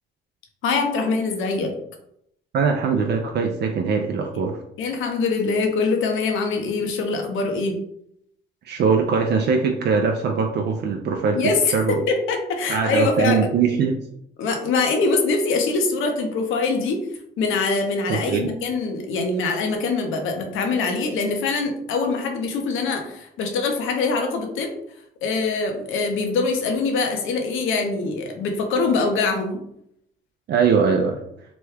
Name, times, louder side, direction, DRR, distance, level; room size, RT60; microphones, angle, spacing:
voice 1, 0.6-1.7 4.8-7.8 11.3-13.5 14.4-17.0 17.4-24.7 25.2-29.6, left 4 dB, 85° left, 4 dB, 0.7 m, -23 dB
voice 2, 2.5-4.6 8.6-12.0 12.7-14.0 18.1-18.5 30.5-31.2, right 5 dB, 60° right, 2 dB, 0.4 m, -21 dB
2.9 x 2.2 x 3.3 m, 0.74 s
cardioid pair, 90°, 20 cm